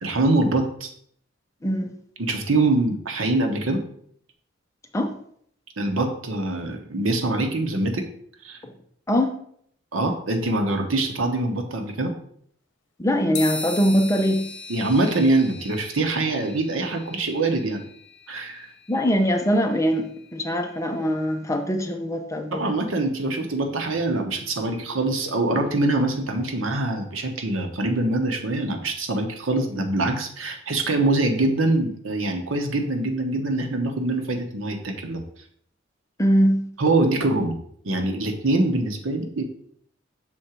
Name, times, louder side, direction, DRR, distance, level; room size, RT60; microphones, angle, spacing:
voice 1, 0.0-0.9 2.2-3.8 5.8-8.0 8.4-8.6 9.9-12.1 14.7-17.8 18.3-18.7 22.5-35.2 36.8-37.5 37.8-39.4, right 2 dB, 85° right, 5 dB, 1.0 m, -24 dB
voice 2, 1.6-1.9 4.9-5.1 8.6-8.7 9.1-9.3 13.0-14.5 18.9-22.7 36.2-36.7, equal, 15° left, 5 dB, 0.6 m, -22 dB
sound 1, 13.3-21.0, left 3 dB, 65° left, 1.0 m, -39 dB
6.2 x 3.8 x 4.5 m, 0.64 s
head